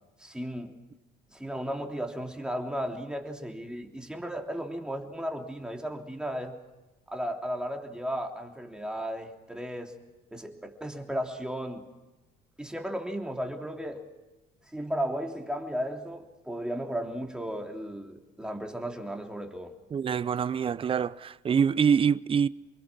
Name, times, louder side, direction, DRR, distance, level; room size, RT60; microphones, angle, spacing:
voice 1, 0.2-0.7 1.3-6.6 7.1-9.9 10.3-11.9 12.6-14.1 14.6-19.7, equal, 5° right, 3.2 m, -35 dB
voice 2, 19.9-22.5, right 7 dB, 30° right, 0.7 m, -25 dB
29.0 x 22.0 x 6.1 m
cardioid pair, 110°, 17 cm